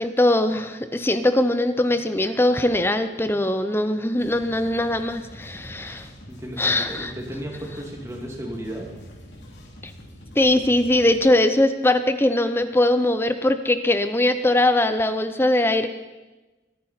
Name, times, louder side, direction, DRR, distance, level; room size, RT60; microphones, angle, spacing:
voice 1, 0.0-6.1 6.6-7.1 10.4-15.9, left 1 dB, 15° left, 10 dB, 0.6 m, -21 dB
sound 1, 4.1-11.2, equal, 90° left, 3.0 m, -44 dB
voice 2, 5.5-5.9 6.3-8.9, equal, 15° right, 0 dB, 2.5 m, -34 dB
24.0 x 9.8 x 4.4 m, 1.1 s
head